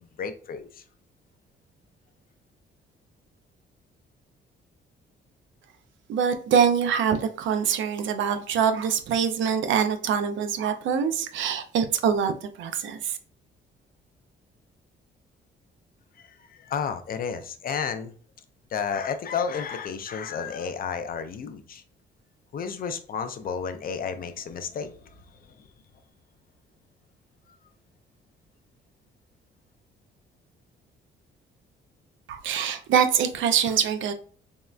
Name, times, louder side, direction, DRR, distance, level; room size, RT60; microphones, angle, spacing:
voice 1, 0.0-0.8 16.2-18.1 18.7-21.8 22.5-25.7 27.5-27.6, left 6 dB, 45° left, 0.4 m, -32 dB
voice 2, 6.1-13.2 32.3-34.1, right 7 dB, 75° right, 0.5 m, -24 dB
3.5 x 2.1 x 2.4 m
cardioid pair, 90°, 20 cm